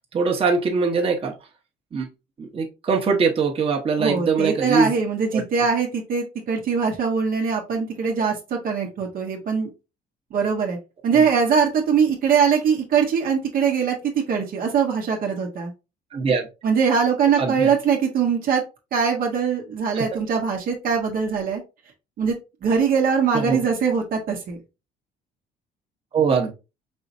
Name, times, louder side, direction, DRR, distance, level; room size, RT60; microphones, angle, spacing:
voice 1, 0.1-1.3 1.9-2.1 2.4-4.9 5.3-5.4 11.1-11.2 16.1-16.4 17.4-17.7 19.9-20.0 23.3-23.6 26.1-26.5, right 5 dB, 35° right, 0 dB, 1.1 m, -22 dB
voice 2, 4.0-9.7 10.3-10.8 11.0-14.0 14.3-15.7 16.6-18.6 18.9-21.6 22.2-22.4 22.6-24.6, right 6 dB, 60° right, 1 dB, 1.1 m, -22 dB
5.4 x 3.0 x 2.6 m, 0.28 s
cardioid pair, 110°, 17 cm